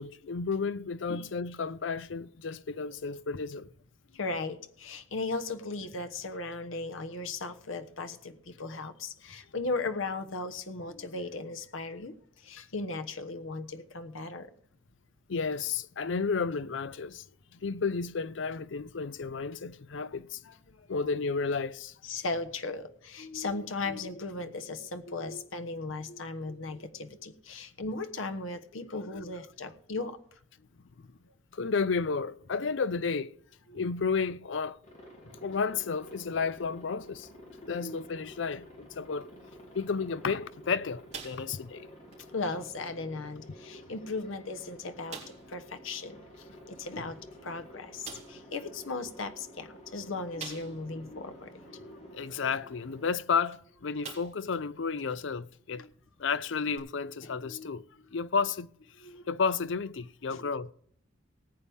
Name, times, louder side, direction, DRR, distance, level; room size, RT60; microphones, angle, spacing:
voice 1, 0.0-3.7 15.3-17.2 17.5-20.4 20.9-22.0 31.5-33.4 33.7-34.8 35.4-37.3 37.7-39.3 39.7-41.9 52.1-55.8 56.2-57.8 58.1-58.7 59.3-60.7, left 5 dB, 65° left, 0.5 m, -32 dB
voice 2, 4.1-14.5 20.4-21.0 22.0-30.4 33.7-33.8 35.2-35.4 37.6-38.0 42.3-45.2 45.5-52.3 55.8-55.9 57.2-57.8 59.0-59.3 60.3-60.5, left 3 dB, 80° left, 1.1 m, -37 dB
Aircraft, 34.8-53.1, equal, 35° left, 3.0 m, -51 dB
sound 1, 41.1-41.8 42.1-42.3 42.8-43.0 43.8-43.9 44.3-44.4 45.1-45.5 47.2-47.3 48.0-48.4 50.4-51.0 51.5-51.6 53.4-53.6 54.0-54.5 55.0-55.1 56.7-56.8, right 6 dB, 35° right, 3.6 m, -44 dB
19.5 x 8.7 x 3.6 m
head